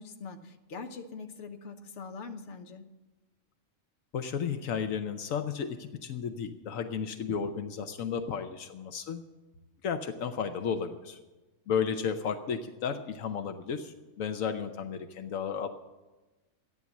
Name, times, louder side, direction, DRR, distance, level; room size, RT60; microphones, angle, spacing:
voice 1, 0.0-2.9, left 4 dB, 60° left, 6 dB, 1.3 m, -43 dB
voice 2, 4.1-9.2 9.8-11.2 11.7-15.7, left 7 dB, 80° left, 8 dB, 1.2 m, -33 dB
13.5 x 9.4 x 7.2 m, 1.2 s
omnidirectional pair, 1.4 m